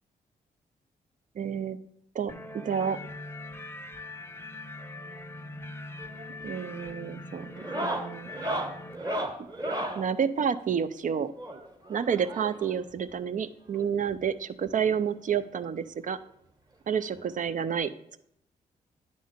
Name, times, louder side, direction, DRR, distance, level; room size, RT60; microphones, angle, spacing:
voice 1, 1.4-1.8 2.1-2.3 2.6-3.0 6.4-7.5 7.8-8.3 10.0-11.3 11.9-16.2 16.9-17.9, right 7 dB, 45° right, 12 dB, 0.5 m, -29 dB
sound 1, 2.3-9.0, left 2 dB, 15° left, 0.6 m, -42 dB
sound 2, 6.0-6.3 6.6-7.0 7.5-10.1 11.4-12.8 13.8-13.9 14.1-14.2 14.7-14.8 16.1-16.2 17.5-17.6, right 1 dB, 20° right, 1.2 m, -34 dB
9.3 x 3.8 x 5.0 m, 0.74 s
hypercardioid pair, 40°, 18 cm